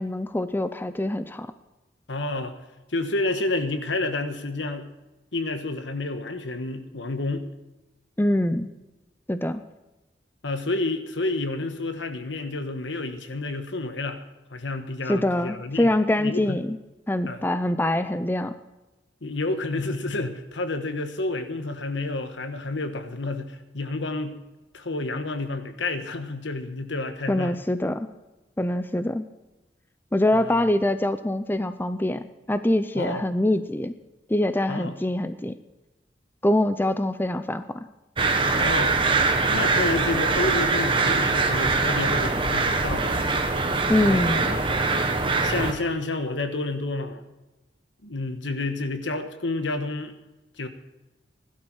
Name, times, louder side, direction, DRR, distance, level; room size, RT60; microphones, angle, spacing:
voice 1, 0.0-1.5 8.2-8.7 9.3-9.6 15.1-16.8 17.1-18.5 27.3-28.1 28.6-29.3 30.1-33.9 34.3-35.5 36.4-37.9 43.9-44.6, left 1 dB, 10° left, 11 dB, 0.5 m, -24 dB
voice 2, 2.1-2.5 2.9-4.9 5.3-7.5 10.4-14.2 14.5-15.9 16.2-16.6 17.3-17.4 19.2-24.4 24.7-27.6 30.3-30.6 32.9-33.2 34.7-34.9 38.5-38.9 39.5-43.3 44.0-45.0 45.4-47.2 48.0-50.2 50.6-50.7, left 2 dB, 80° left, 8 dB, 1.3 m, -30 dB
sound 1, 38.2-45.7, right 3 dB, 30° right, 1.2 m, -23 dB
16.5 x 12.0 x 4.7 m, 1.1 s
head